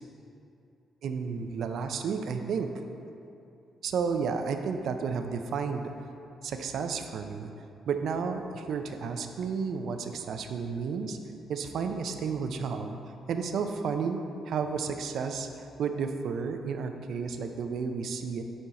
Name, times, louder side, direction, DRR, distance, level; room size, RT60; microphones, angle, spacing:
voice 1, 1.0-2.7 3.8-5.9 6.4-7.5 7.9-11.2 11.5-13.0 13.3-14.2 14.5-15.5 15.8-18.4, right 5 dB, 70° right, 6 dB, 0.4 m, -32 dB
6.8 x 4.4 x 3.7 m, 2.7 s
cardioid pair, 90°, 0 cm